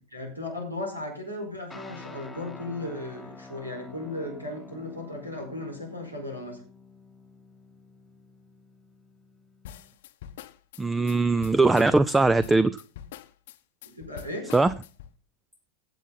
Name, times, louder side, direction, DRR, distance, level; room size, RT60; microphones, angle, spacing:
voice 1, 0.1-6.6 11.2-11.4 13.8-14.5, left 1 dB, 90° right, 2 dB, 4.8 m, -36 dB
sound 1, 1.7-10.0, left 3 dB, 10° left, 1.1 m, -48 dB
sound 2, 9.6-15.2, left 10 dB, 55° left, 0.8 m, -43 dB
voice 2, 10.8-12.7 14.5-14.7, right 3 dB, 10° right, 18 dB, 0.4 m, -20 dB
16.5 x 7.3 x 4.0 m, 0.37 s
figure-of-eight pair, 90°, 0 cm